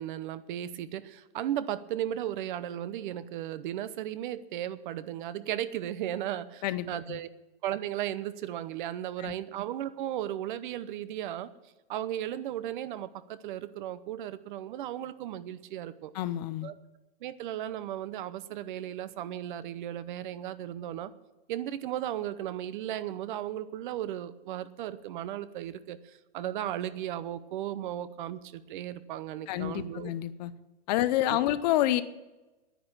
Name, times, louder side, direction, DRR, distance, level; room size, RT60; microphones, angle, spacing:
voice 1, 0.0-7.3 7.6-11.5 11.9-16.1 16.6-16.7 17.2-21.1 21.5-30.1 31.3-31.5, right 12 dB, 50° right, 15 dB, 0.8 m, -35 dB
voice 2, 6.6-7.2 9.2-9.3 16.1-16.7 29.5-30.5 30.9-32.0, left 14 dB, 40° left, 15 dB, 0.7 m, -28 dB
10.0 x 10.0 x 8.7 m, 1.1 s
supercardioid pair, 165°, 31 cm